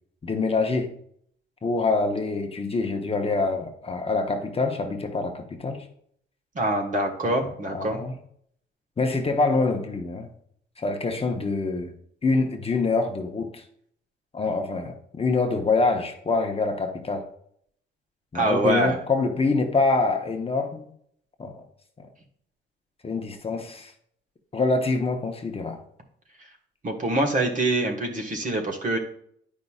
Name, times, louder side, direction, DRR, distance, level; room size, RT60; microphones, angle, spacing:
voice 1, 0.2-0.9 1.6-5.8 7.2-7.3 7.7-8.1 9.0-10.3 10.8-11.9 12.2-13.6 14.3-17.3 18.3-20.9 21.4-21.6 23.0-23.9 24.5-25.8, left 3 dB, 30° left, 4 dB, 0.9 m, -25 dB
voice 2, 6.5-8.0 18.3-19.0 26.8-29.0, right 1 dB, 40° right, 3 dB, 1.5 m, -24 dB
9.5 x 5.3 x 2.4 m, 0.66 s
cardioid pair, 90°, 20 cm